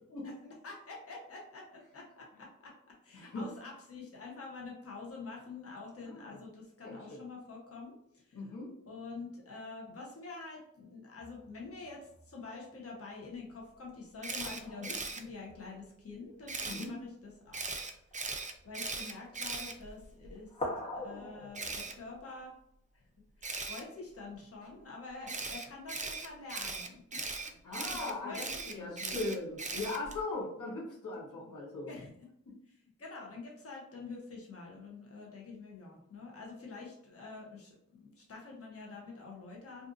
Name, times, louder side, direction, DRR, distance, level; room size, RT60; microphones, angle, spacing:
voice 1, 0.2-2.7 3.0-8.5 8.9-17.8 18.2-20.5 20.9-22.5 22.9-23.1 23.4-27.2 27.7-29.2 31.8-32.1 32.7-37.8 38.0-39.9, left 3 dB, 50° left, -2 dB, 0.9 m, -47 dB
voice 2, 3.1-3.4 6.0-6.4 6.8-7.2 8.3-8.7 16.6-16.9 27.6-28.5 28.7-31.9, left 2 dB, 80° left, -4 dB, 0.9 m, -39 dB
sound 1, 11.2-12.3 14.4-16.7 17.5-17.7 18.0-18.7 19.6-20.0 20.3-22.2, left 1 dB, 25° left, 1.0 m, -44 dB
Camera, 14.2-15.2 16.5-16.9 17.5-20.3 21.5-21.9 23.4-23.8 25.3-30.2, right 3 dB, 25° right, 0.4 m, -39 dB
2.5 x 2.4 x 2.5 m, 0.72 s
cardioid pair, 45°, 31 cm